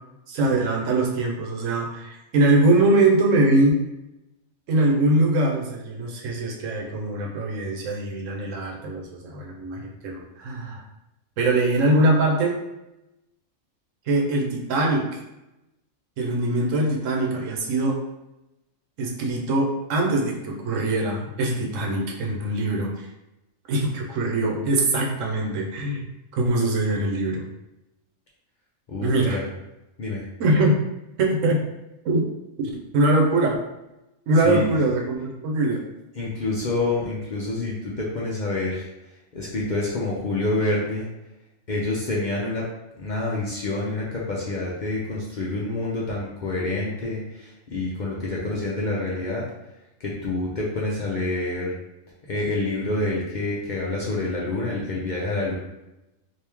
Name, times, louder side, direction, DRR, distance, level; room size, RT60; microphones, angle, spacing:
voice 1, 0.3-3.8 4.7-10.8 11.4-12.6 14.1-15.1 16.2-18.0 19.0-23.1 23.7-26.0 26.3-27.4 29.0-29.4 30.4-30.8 31.2-31.6 32.0-32.3 32.6-33.6 34.3-35.8, right 2 dB, 80° right, 0 dB, 1.0 m, -22 dB
voice 2, 28.9-29.4 30.0-30.2 34.4-34.8 36.1-38.8 39.3-41.1 41.7-42.7 42.9-49.4 50.0-51.7 52.2-55.5, left 2 dB, 50° left, -5 dB, 0.5 m, -27 dB
3.0 x 2.7 x 3.4 m, 0.93 s
omnidirectional pair, 1.3 m